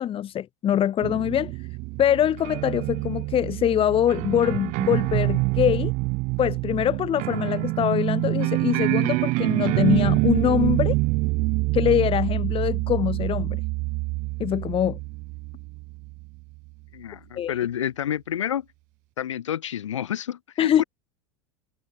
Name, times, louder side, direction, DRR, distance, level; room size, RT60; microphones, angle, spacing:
voice 1, 0.0-1.5 2.0-5.9 6.4-10.9 11.7-13.6 14.4-15.0 17.4-17.5 20.6-20.8, left 10 dB, 35° left, 2.4 m, -23 dB
sound 1, 1.0-16.3, right 25 dB, 55° right, 1.6 m, -26 dB
voice 2, 16.9-18.7 19.2-20.8, left 10 dB, 80° left, 6.1 m, -29 dB
hypercardioid pair, 80°, 16 cm